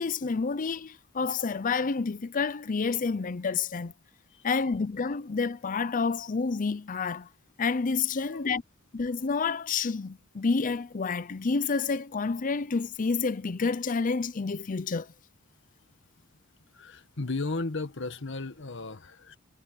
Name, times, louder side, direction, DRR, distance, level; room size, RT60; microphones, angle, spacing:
voice 1, 0.0-3.9 4.4-7.3 7.6-8.6 8.9-15.1, left 4 dB, 40° left, 0.6 m, -29 dB
voice 2, 8.2-8.5 16.7-19.4, left 3 dB, 60° left, 1.4 m, -35 dB
head